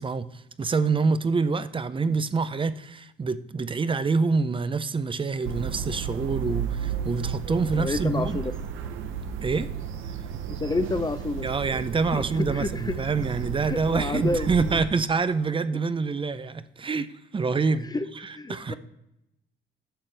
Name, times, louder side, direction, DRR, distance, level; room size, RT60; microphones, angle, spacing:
voice 1, 0.0-8.4 9.4-9.7 11.4-18.7, right 4 dB, 25° right, 0.5 m, -26 dB
sound 1, 5.4-14.8, right 7 dB, 85° right, 0.8 m, -33 dB
voice 2, 7.8-8.5 10.5-11.5 12.1-12.2 12.5-13.1 13.6-14.8 17.9-18.0 18.3-18.8, left 3 dB, 20° left, 0.6 m, -29 dB
10.5 x 7.1 x 3.3 m
cardioid pair, 90°, 20 cm